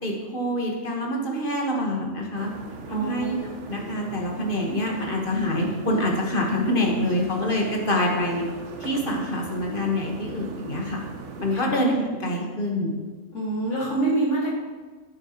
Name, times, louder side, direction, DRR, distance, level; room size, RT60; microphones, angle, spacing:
voice 1, 0.0-2.5 2.9-3.4 3.7-8.4 8.8-11.0 11.4-12.9, left 1 dB, 40° left, -1 dB, 1.5 m, -26 dB
sound 1, 2.3-11.6, right 4 dB, 65° right, 1.1 m, -40 dB
voice 2, 2.9-3.3 11.5-11.7 13.3-14.6, right 2 dB, 60° left, -6 dB, 2.2 m, -26 dB
12.0 x 6.6 x 3.0 m, 1.4 s
omnidirectional pair, 1.4 m